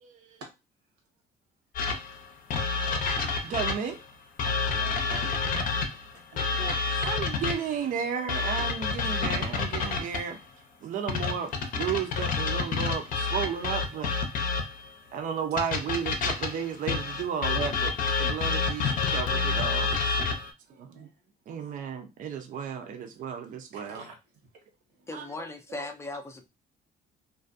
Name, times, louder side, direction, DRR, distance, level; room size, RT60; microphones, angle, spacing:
voice 1, 0.0-0.4 3.4-4.0 7.0-10.4 10.8-11.5 11.8-14.1 15.1-17.9 18.2-20.2 20.8-21.1 21.5-24.0 25.1-25.9, right 7 dB, 50° right, 0.5 m, -33 dB
sound 1, 1.7-4.0 4.4-7.8 8.3-10.3 11.1-14.9 15.6-20.5, left 4 dB, 55° left, 0.6 m, -29 dB
voice 2, 4.6-5.6 6.1-6.8 11.1-11.2 18.7-19.2 20.7-21.3 21.7-21.8 23.7-24.2 24.5-24.6 25.0-25.5, right 2 dB, 90° right, 1.0 m, -47 dB
voice 3, 25.1-26.4, left 2 dB, 15° left, 0.4 m, -38 dB
2.4 x 2.2 x 2.5 m
cardioid pair, 110°, 17 cm